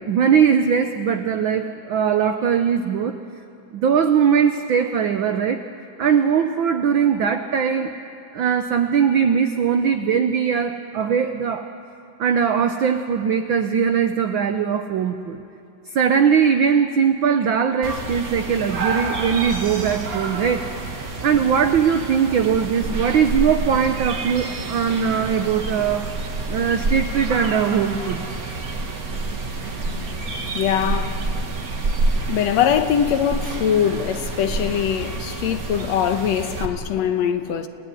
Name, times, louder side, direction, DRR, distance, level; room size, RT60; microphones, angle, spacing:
voice 1, 0.0-3.2 3.7-5.6 6.0-7.9 8.3-11.7 12.2-15.4 15.9-20.7 21.2-26.1 26.5-28.3, right 7 dB, 90° right, 1.0 m, -20 dB
sound 1, 17.8-36.7, right 3 dB, 35° right, 1.7 m, -28 dB
voice 2, 30.5-31.2 32.1-37.7, left 9 dB, 70° left, 2.2 m, -22 dB
30.0 x 17.0 x 9.7 m
omnidirectional pair, 3.3 m